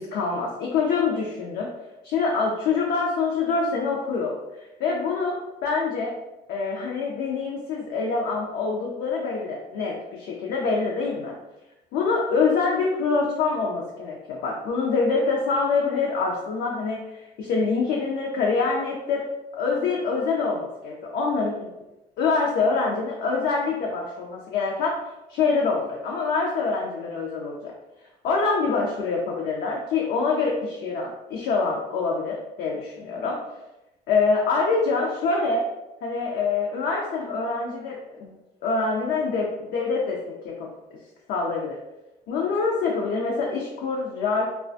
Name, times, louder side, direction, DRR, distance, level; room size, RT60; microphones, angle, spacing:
voice 1, 0.0-1.7 2.0-6.1 6.5-11.3 11.9-19.3 19.5-21.7 22.2-25.0 25.3-27.7 28.2-33.4 34.1-35.6 36.0-38.3 38.6-40.7 41.3-41.8 42.3-44.5, left 4 dB, 75° left, -2 dB, 0.4 m, -25 dB
2.3 x 2.1 x 2.5 m, 0.95 s
cardioid pair, 110°, 17 cm